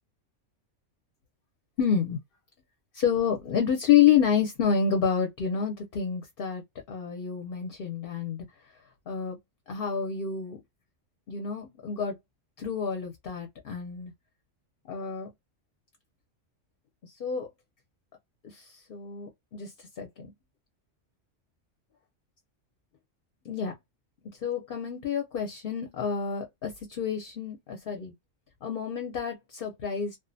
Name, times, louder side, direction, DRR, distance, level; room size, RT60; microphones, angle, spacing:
voice 1, 1.8-2.2 2.9-6.6 6.9-8.4 9.1-9.4 9.7-10.6 11.3-12.2 12.6-14.1 14.9-15.3 17.2-17.5 18.4-19.7 20.0-20.3 23.4-23.7 24.2-28.1 28.6-30.2, left 7 dB, 55° left, 0.7 m, -28 dB
2.4 x 2.1 x 2.5 m
omnidirectional pair, 1.3 m